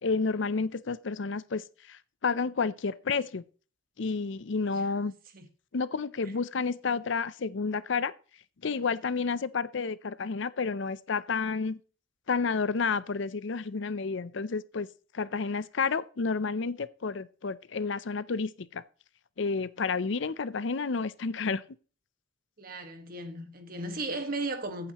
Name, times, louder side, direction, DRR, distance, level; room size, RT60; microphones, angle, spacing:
voice 1, 0.0-3.4 4.0-5.1 5.7-8.1 8.6-11.8 12.3-14.9 15.1-18.8 19.4-21.6, left 4 dB, 60° left, 0.5 m, -30 dB
voice 2, 22.6-24.9, right 2 dB, 45° right, 1.6 m, -36 dB
15.5 x 8.8 x 3.0 m
head